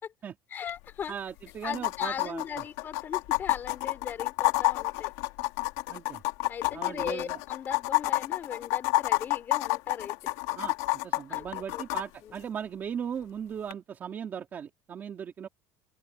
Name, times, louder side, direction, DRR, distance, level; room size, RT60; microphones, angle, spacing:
voice 1, 0.5-1.1 1.6-5.1 6.5-10.3 11.3-11.5 11.7-11.8 12.2-12.4, left 8 dB, 25° left, 4.4 m, -38 dB
sound 1, 0.7-0.8 1.0-1.1 1.7-12.0 13.7-13.8, left 21 dB, 85° left, 2.7 m, -28 dB
voice 2, 1.1-2.6 5.9-6.2 6.7-7.4 10.6-10.7 11.0-15.5, right 8 dB, 25° right, 2.6 m, -38 dB
open air
cardioid pair, 175°, 7 cm